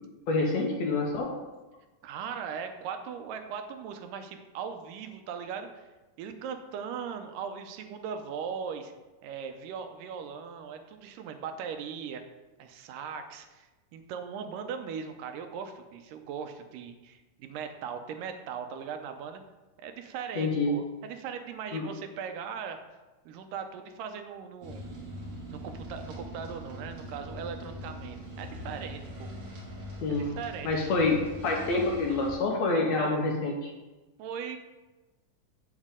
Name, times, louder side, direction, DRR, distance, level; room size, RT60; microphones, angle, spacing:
voice 1, 0.3-1.3 20.4-20.7 21.7-21.8 30.0-30.3 30.6-33.7, left 3 dB, 70° left, 0 dB, 1.8 m, -27 dB
voice 2, 2.0-5.9 6.2-8.9 9.2-12.3 12.6-19.4 19.8-22.8 23.3-24.8 25.5-29.3 30.1-30.9 32.7-33.2 34.2-34.6, right 7 dB, 80° right, 6 dB, 2.3 m, -39 dB
sound 1, 24.6-32.3, equal, 40° right, 2.1 m, -42 dB
8.6 x 7.2 x 3.6 m, 1.1 s
omnidirectional pair, 3.8 m